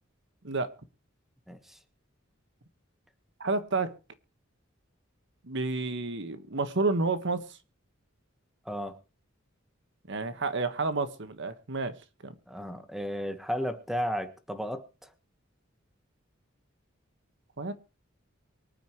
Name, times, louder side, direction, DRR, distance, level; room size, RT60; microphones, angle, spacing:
voice 1, 1.5-1.8 8.6-9.0 12.5-14.8, equal, ahead, 1.4 m, -33 dB
voice 2, 3.4-3.9 5.5-7.5 10.1-11.9 12.2-12.3 17.6-17.7, right 3 dB, 65° right, 1.4 m, -30 dB
24.0 x 9.3 x 3.1 m
head